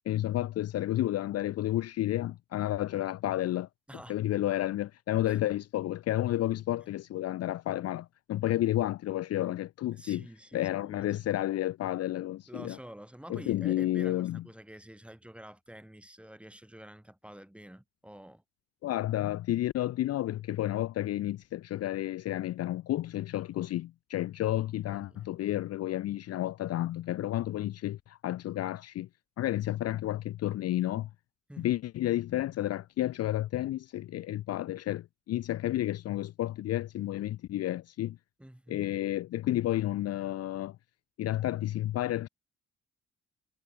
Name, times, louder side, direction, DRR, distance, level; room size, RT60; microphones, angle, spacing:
voice 1, 0.1-3.7 4.1-10.3 10.5-12.8 13.3-14.4 18.8-29.1 29.4-31.1 31.6-38.2 38.7-40.8 41.2-42.3, left 14 dB, 55° left, 0.5 m, -31 dB
voice 2, 3.9-4.2 5.2-5.5 9.9-11.3 12.5-18.4 24.8-25.3 31.5-31.8 38.4-39.0, right 1 dB, 5° right, 2.5 m, -49 dB
cardioid pair, 90°, 30 cm